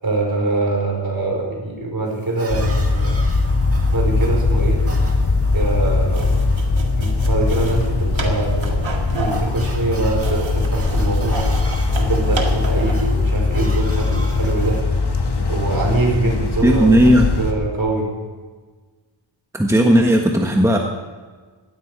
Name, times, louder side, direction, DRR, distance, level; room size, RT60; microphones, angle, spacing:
voice 1, 0.0-3.2 3.9-4.8 5.5-6.4 6.9-11.5 11.9-14.8 15.5-18.1, right 2 dB, 50° right, -1 dB, 5.0 m, -23 dB
sound 1, 2.1-14.8, right 2 dB, 30° right, 1.8 m, -38 dB
sound 2, 2.5-17.5, left 3 dB, 55° left, 1.7 m, -20 dB
sound 3, 6.1-13.1, right 3 dB, 80° right, 2.0 m, -32 dB
voice 2, 16.6-17.3 19.5-20.8, equal, 5° right, 1 dB, 1.4 m, -14 dB
17.5 x 13.0 x 5.1 m, 1.4 s
wide cardioid pair, 95°, 46 cm